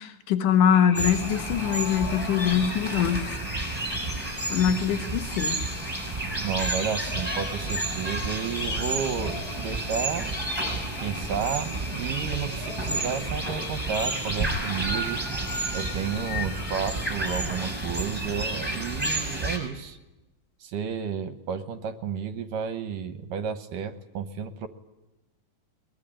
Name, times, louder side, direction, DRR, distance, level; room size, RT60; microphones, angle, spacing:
voice 1, 0.0-3.4 4.5-5.6, left 8 dB, 65° left, 8 dB, 2.7 m, -23 dB
sound 1, 0.7-16.8, left 1 dB, 50° left, 7.5 m, -41 dB
sound 2, 0.9-19.6, right 1 dB, 5° right, 6.3 m, -31 dB
voice 2, 6.4-10.3 11.0-15.2 15.7-20.0 20.6-24.7, right 7 dB, 70° right, 9 dB, 2.5 m, -32 dB
23.0 x 22.0 x 8.9 m, 0.98 s
omnidirectional pair, 4.2 m